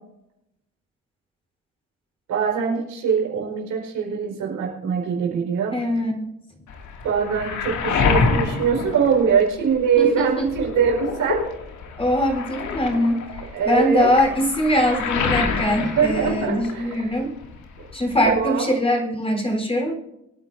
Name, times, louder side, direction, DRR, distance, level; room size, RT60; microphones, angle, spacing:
voice 1, 2.3-5.8 7.0-11.4 13.5-14.1 15.8-17.2 17.8-17.9 18.2-18.7, right 6 dB, 85° right, 0 dB, 4.7 m, -23 dB
voice 2, 5.7-6.3 10.0-10.5 12.0-17.3 17.9-19.9, equal, 20° left, 2 dB, 4.1 m, -22 dB
Waves surf, 6.7-9.9 10.2-17.2 17.4-18.4, left 4 dB, 75° left, 2.4 m, -27 dB
24.0 x 9.7 x 2.7 m, 0.86 s
cardioid pair, 90°, 30 cm